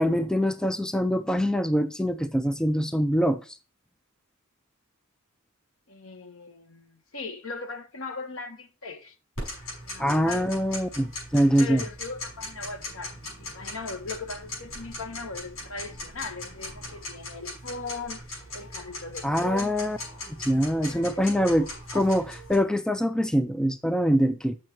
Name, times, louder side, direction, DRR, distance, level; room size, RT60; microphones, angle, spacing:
voice 1, 0.0-3.4 10.0-11.8 19.2-20.0 20.4-21.7 21.9-24.6, equal, 5° left, 0.4 m, -24 dB
voice 2, 5.9-9.1 9.6-10.5 11.6-18.2 18.5-20.0 20.9-21.5, left 3 dB, 70° left, 1.3 m, -39 dB
Tick-tock, 9.4-22.6, left 2 dB, 85° left, 5.9 m, -39 dB
7.9 x 6.6 x 4.4 m
head